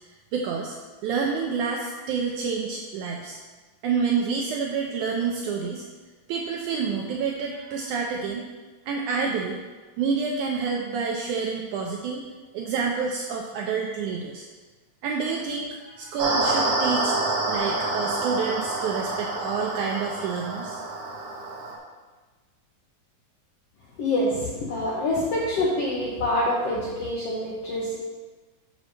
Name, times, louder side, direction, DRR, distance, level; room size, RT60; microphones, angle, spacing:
voice 1, 0.3-0.8 1.0-3.4 3.8-5.8 6.3-8.4 8.9-9.6 10.0-12.2 12.5-14.4 15.0-17.2 17.4-20.8, right 5 dB, 80° right, 0 dB, 1.8 m, -28 dB
sound 1, 16.2-21.7, right 2 dB, 65° right, 1.5 m, -27 dB
voice 2, 24.0-28.0, left 1 dB, 70° left, -5 dB, 1.5 m, -26 dB
6.3 x 5.4 x 6.2 m, 1.3 s
omnidirectional pair, 4.1 m